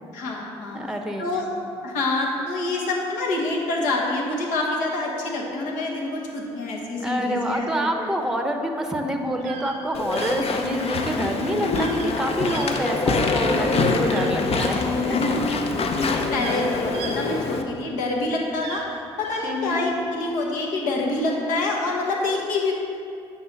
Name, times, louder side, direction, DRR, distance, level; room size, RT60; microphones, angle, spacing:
voice 1, 0.1-0.8 1.2-1.5 1.8-7.6 8.0-8.1 10.9-11.0 14.7-15.3 15.9-18.8 19.2-22.7, left 2 dB, 70° left, -1 dB, 1.3 m, -26 dB
voice 2, 0.7-1.3 7.0-15.6 19.4-19.8, equal, 5° right, 4 dB, 0.8 m, -27 dB
sound 1, 9.3-9.8 10.1-10.3 11.7-12.1 12.4-13.3 14.0-14.7 15.6-15.7 16.1-17.9 18.5-19.5, right 6 dB, 80° right, 0.8 m, -38 dB
Walk footsteps / Chatter / Squeak, 9.9-17.6, left 3 dB, 45° left, 0.7 m, -24 dB
7.8 x 5.5 x 3.9 m, 2.5 s
hypercardioid pair, 55°, 14 cm